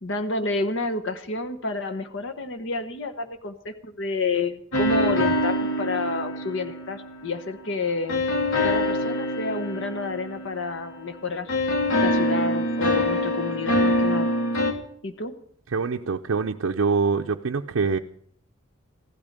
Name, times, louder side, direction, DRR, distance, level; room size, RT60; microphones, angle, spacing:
voice 1, 0.0-8.2 8.6-11.5 12.0-14.3 15.0-15.3, left 3 dB, 65° left, 8 dB, 1.0 m, -29 dB
sound 1, 4.7-7.4 8.1-11.1 11.5-14.7, left 1 dB, 85° left, 2.8 m, -25 dB
voice 2, 15.7-18.0, right 5 dB, 80° right, 2 dB, 0.6 m, -24 dB
15.0 x 12.0 x 6.6 m, 0.62 s
head